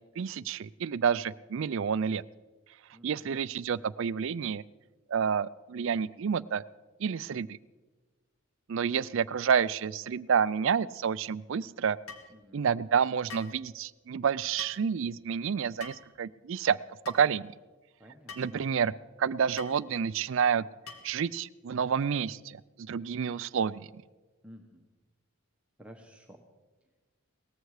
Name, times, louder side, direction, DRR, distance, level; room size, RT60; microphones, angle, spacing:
voice 1, 0.2-2.2 3.0-4.6 5.1-6.6 7.0-7.6 8.7-12.0 12.5-16.8 17.1-17.5 18.4-18.9 19.2-20.6 21.0-23.9, right 7 dB, 60° right, 18 dB, 0.4 m, -29 dB
voice 2, 2.9-3.4 12.3-12.7 18.0-18.7 24.4-24.9 25.8-26.4, equal, 5° right, 2 dB, 1.0 m, -52 dB
sound 1, 12.1-12.3 13.3-13.6 14.6-14.8 15.8-16.1 17.0-17.2 18.3-18.5 19.6-19.8 20.9-21.2, left 5 dB, 75° left, 1.7 m, -45 dB
18.5 x 14.5 x 4.8 m, 1.2 s
head